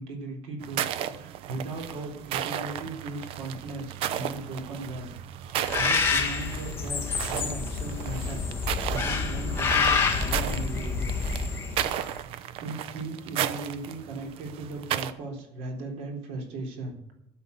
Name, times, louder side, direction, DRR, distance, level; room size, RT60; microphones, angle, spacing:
voice 1, 0.0-11.0 12.0-12.2 12.6-17.1, right 2 dB, 80° right, 3 dB, 3.8 m, -38 dB
sound 1, 0.6-15.1, right 11 dB, 60° right, 0.8 m, -34 dB
Bird, 5.6-12.0, left 5 dB, 25° left, 1.6 m, -28 dB
12.5 x 7.3 x 9.6 m, 0.79 s
cardioid pair, 180°, 11 cm